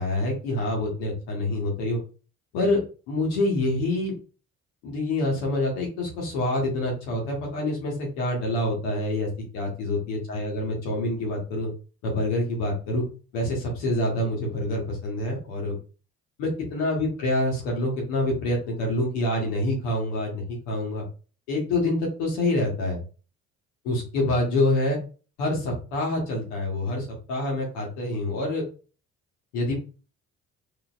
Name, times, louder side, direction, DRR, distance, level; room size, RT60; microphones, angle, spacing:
voice 1, 0.0-2.0 2.5-2.8 3.1-4.1 4.8-11.7 12.0-13.0 13.3-15.8 16.4-21.0 21.5-23.0 23.8-25.0 25.4-28.6 29.5-29.7, left 1 dB, 85° left, -1 dB, 1.3 m, -26 dB
4.1 x 3.0 x 2.5 m, 0.37 s
hypercardioid pair, 55°, 35 cm